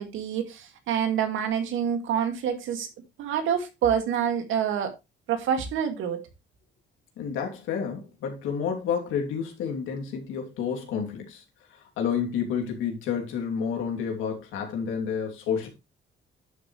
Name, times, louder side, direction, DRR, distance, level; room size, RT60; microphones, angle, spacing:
voice 1, 0.0-2.9 3.2-4.9 5.3-6.3, right 8 dB, 85° right, 2.3 m, -27 dB
voice 2, 7.2-11.4 11.7-15.7, left 7 dB, 90° left, 3.1 m, -30 dB
10.5 x 7.9 x 3.3 m
cardioid pair, 90°, 20 cm